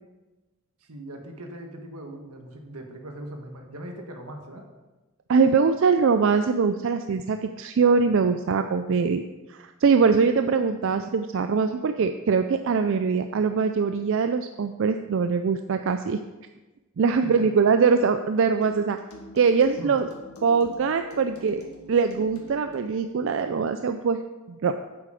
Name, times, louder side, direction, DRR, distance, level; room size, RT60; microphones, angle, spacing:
voice 1, 0.8-4.7 17.2-17.5 19.8-19.9, right 1 dB, 85° right, 3 dB, 1.5 m, -40 dB
voice 2, 5.3-9.2 9.5-16.2 17.0-19.0 19.3-20.1 20.4-21.6 21.9-24.2 24.5-24.8, right 5 dB, 60° right, 8 dB, 0.4 m, -22 dB
sound 1, 18.6-22.9, left 1 dB, 80° left, 1.9 m, -46 dB
8.6 x 7.5 x 4.9 m, 1.1 s
head